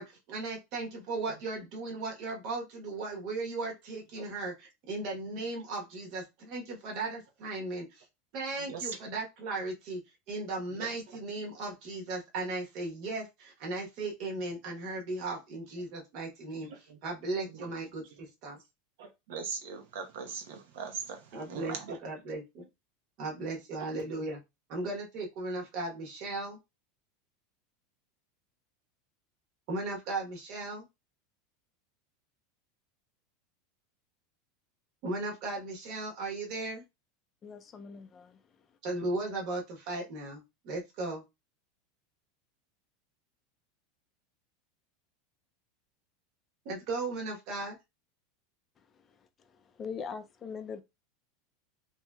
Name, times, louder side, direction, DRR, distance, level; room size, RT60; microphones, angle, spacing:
voice 1, 0.0-8.0 8.3-10.0 10.3-16.7 17.0-18.6 21.3-22.7 23.2-24.4 24.7-26.6 29.7-30.9 35.0-36.8 38.8-41.2 46.6-47.8, right 2 dB, 50° right, 1.0 m, -36 dB
voice 2, 8.6-9.2 10.7-11.2 16.6-17.0 17.5-17.7 18.1-18.2 19.0-22.0 23.8-23.9, right 6 dB, 75° right, 0.8 m, -41 dB
voice 3, 37.4-38.4 49.0-49.2 49.5-50.8, left 6 dB, 25° left, 0.4 m, -42 dB
3.0 x 2.7 x 2.2 m
supercardioid pair, 150°, 0 cm